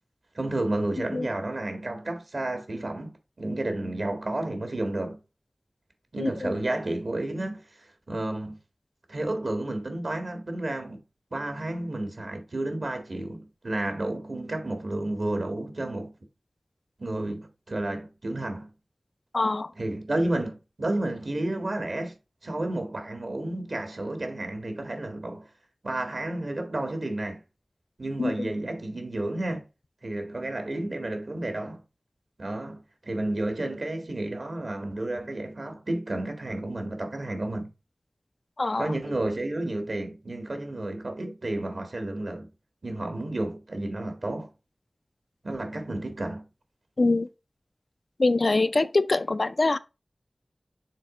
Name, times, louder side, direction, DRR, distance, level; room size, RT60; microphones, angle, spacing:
voice 1, 0.4-3.1 3.4-5.2 6.1-8.6 9.1-11.0 11.3-16.1 17.0-18.7 19.8-22.2 22.4-25.5 25.8-27.4 28.0-29.7 30.0-31.8 32.4-37.7 38.8-42.5 42.8-44.5 45.4-46.5, right 1 dB, 65° right, 1.8 m, -31 dB
voice 2, 6.2-6.5 19.3-19.7 28.2-28.5 38.6-38.9 47.0-47.3 48.2-49.8, left 3 dB, 65° left, 0.5 m, -24 dB
6.5 x 4.1 x 3.7 m
wide cardioid pair, 55°, 0 cm